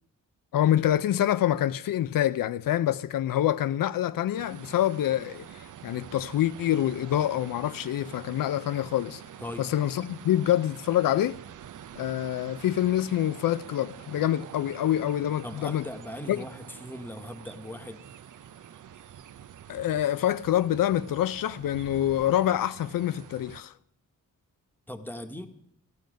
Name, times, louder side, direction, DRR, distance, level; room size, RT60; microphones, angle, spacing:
voice 1, 0.5-9.2 9.6-11.4 12.0-15.9 16.3-16.4 19.7-23.7, left 12 dB, 85° left, 0.5 m, -26 dB
sound 1, 4.3-23.6, right 9 dB, 70° right, 0.6 m, -46 dB
voice 2, 15.4-18.0 24.9-25.5, left 1 dB, 5° left, 1.2 m, -39 dB
14.5 x 12.0 x 5.1 m
wide cardioid pair, 115°, 32 cm